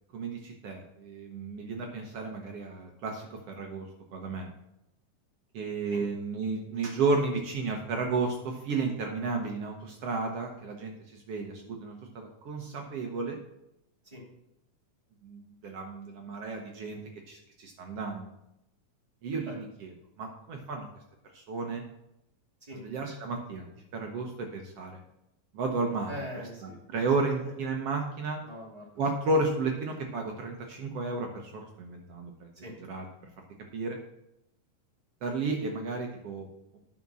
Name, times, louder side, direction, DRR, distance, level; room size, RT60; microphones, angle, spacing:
voice 1, 0.1-4.5 5.5-13.4 15.2-17.0 17.3-18.3 19.2-20.9 21.3-21.8 22.8-23.7 23.9-25.0 25.5-26.2 26.6-28.4 29.0-32.5 32.9-33.1 33.7-34.0 35.2-36.5 36.7-36.8, right 3 dB, 65° right, 2 dB, 1.7 m, -33 dB
voice 2, 26.1-27.2 28.4-29.0 32.6-32.7, equal, 10° right, -4 dB, 2.5 m, -42 dB
9.5 x 6.0 x 6.1 m, 0.83 s
omnidirectional pair, 3.7 m